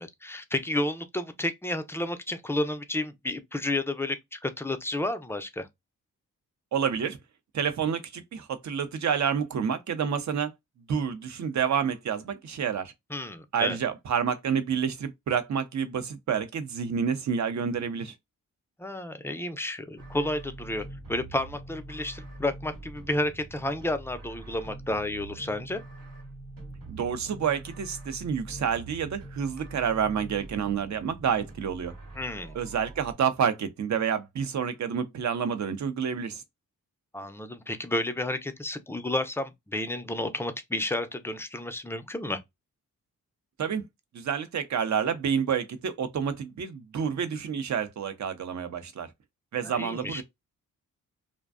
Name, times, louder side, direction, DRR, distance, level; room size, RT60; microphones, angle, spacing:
voice 1, 0.0-5.7 13.1-13.8 18.8-20.8 21.1-25.8 32.2-32.6 37.1-42.4 49.6-50.2, left 1 dB, 5° left, 0.4 m, -31 dB
voice 2, 6.7-7.2 7.5-10.5 10.9-12.9 13.5-18.1 26.9-31.9 32.5-36.4 43.6-43.8 44.1-49.1 49.5-50.2, right 7 dB, 55° right, 0.7 m, -29 dB
sound 1, 20.0-33.1, right 2 dB, 80° right, 1.1 m, -44 dB
2.5 x 2.1 x 2.4 m
cardioid pair, 60°, 34 cm